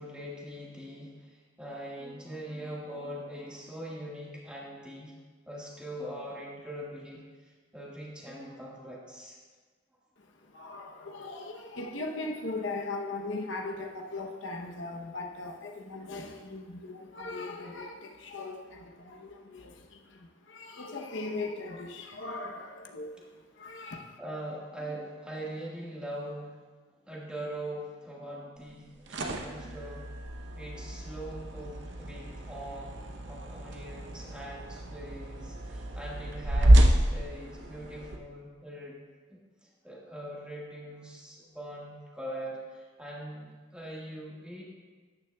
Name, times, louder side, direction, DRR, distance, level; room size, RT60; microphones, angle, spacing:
voice 1, 0.0-5.1 5.4-9.4 23.7-23.9 24.2-26.6 27.0-30.1 30.6-32.9 33.2-39.0 39.3-44.6, right 1 dB, 5° right, -5 dB, 1.6 m, -42 dB
voice 2, 10.2-24.2, left 2 dB, 80° left, 2 dB, 0.8 m, -39 dB
sound 1, 28.8-38.2, right 1 dB, 70° right, 0.8 m, -28 dB
13.5 x 9.4 x 2.3 m, 1.4 s
head